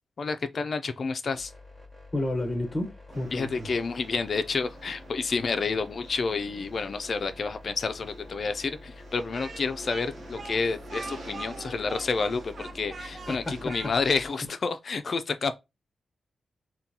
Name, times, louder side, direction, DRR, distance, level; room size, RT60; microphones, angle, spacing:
voice 1, 0.2-1.5 3.3-15.5, left 4 dB, 55° left, 0.3 m, -29 dB
sound 1, 1.4-14.3, left 3 dB, 10° right, 1.1 m, -48 dB
voice 2, 2.1-3.7 13.3-13.7, left 1 dB, 20° left, 1.2 m, -31 dB
sound 2, 3.1-13.7, right 2 dB, 70° right, 0.9 m, -48 dB
Speech, 9.3-14.4, right 3 dB, 45° right, 0.4 m, -42 dB
3.8 x 2.2 x 2.8 m
cardioid pair, 100°, 0 cm